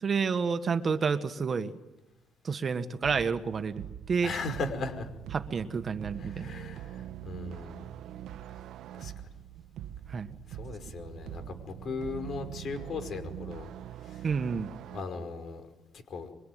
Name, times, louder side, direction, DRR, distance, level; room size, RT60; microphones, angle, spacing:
voice 1, 0.0-1.7 2.4-4.3 5.3-6.5 10.1-10.3 14.2-14.7, right 5 dB, 35° right, 9 dB, 1.6 m, -30 dB
sound 1, 3.0-15.0, right 11 dB, 75° right, 1.3 m, -43 dB
voice 2, 4.2-5.1 6.2-7.9 9.0-9.1 10.5-13.7 14.0-14.3 14.8-15.7 16.1-16.3, left 3 dB, 55° left, 9 dB, 5.1 m, -38 dB
25.5 x 23.5 x 9.4 m, 1.0 s
cardioid pair, 105°, 0 cm